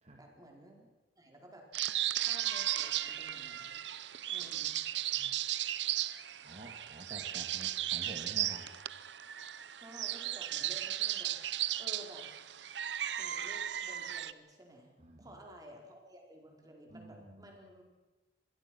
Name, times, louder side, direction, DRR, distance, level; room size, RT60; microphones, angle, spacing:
voice 1, 0.2-0.9 1.2-1.7 2.2-3.7 4.3-4.8 9.7-11.4 11.8-12.3 13.1-14.9 15.2-17.8, equal, 20° right, 1 dB, 4.5 m, -53 dB
sound 1, 1.7-14.3, right 13 dB, 70° right, 0.8 m, -36 dB
voice 2, 6.4-8.7 15.0-15.3 16.9-17.4, right 1 dB, 40° right, 1 dB, 2.3 m, -49 dB
25.5 x 21.0 x 6.2 m, 1.2 s
head